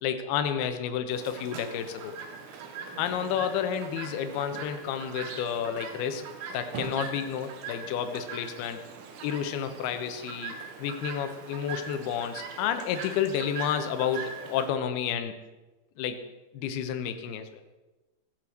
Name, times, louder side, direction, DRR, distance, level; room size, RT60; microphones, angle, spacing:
voice 1, 0.0-2.2 3.0-6.2 6.5-8.8 9.2-15.3 16.0-16.2 16.5-17.6, left 8 dB, 70° left, 8 dB, 2.7 m, -30 dB
Chirp tweet, 1.1-14.7, right 5 dB, 65° right, 3.2 m, -41 dB
15.5 x 9.6 x 6.4 m, 1.1 s
omnidirectional pair, 5.1 m